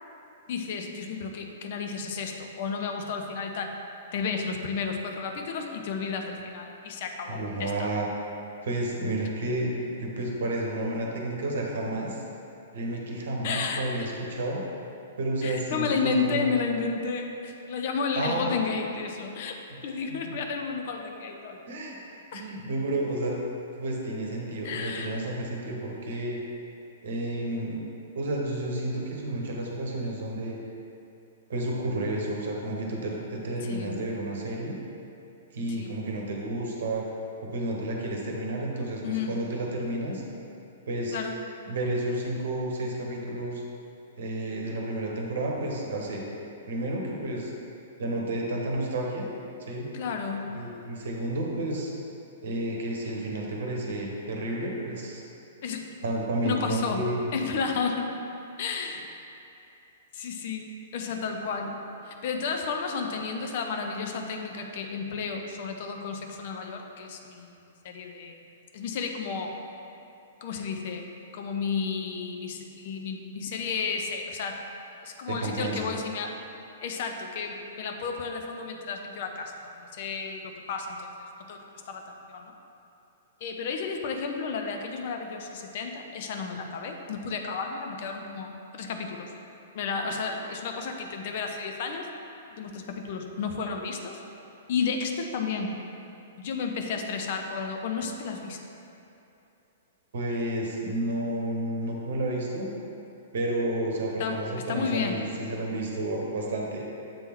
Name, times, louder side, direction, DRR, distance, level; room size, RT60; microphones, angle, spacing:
voice 1, 0.5-3.7 4.1-7.9 13.4-13.8 15.4-21.6 22.3-22.5 24.6-25.1 33.6-34.0 35.7-35.9 39.0-39.4 41.1-41.4 49.9-50.5 55.6-55.9 56.4-57.1 57.3-58.1 58.6-59.1 60.1-60.7 60.9-61.8 62.1-68.4 68.7-69.5 70.4-71.1 71.3-74.6 75.0-76.3 76.8-81.1 81.4-82.5 83.4-89.3 89.7-92.1 92.6-94.2 94.7-95.7 96.3-98.6 104.2-104.4 104.7-105.3, left 5 dB, 50° left, 3 dB, 0.6 m, -32 dB
voice 2, 7.3-8.1 8.6-9.7 10.0-12.2 12.7-14.6 15.2-16.5 18.2-18.6 20.1-20.4 21.7-23.4 23.8-26.4 27.0-27.9 28.1-30.6 31.5-34.8 35.5-37.0 37.4-40.2 40.9-41.2 41.7-43.6 44.2-46.2 46.7-47.5 48.0-49.3 49.6-49.9 50.5-51.9 52.4-55.2 56.0-57.3 75.3-75.9 100.1-102.7 103.3-106.9, right 1 dB, 60° right, -1 dB, 1.0 m, -31 dB
7.7 x 3.6 x 4.4 m, 2.7 s
figure-of-eight pair, 110°, 0 cm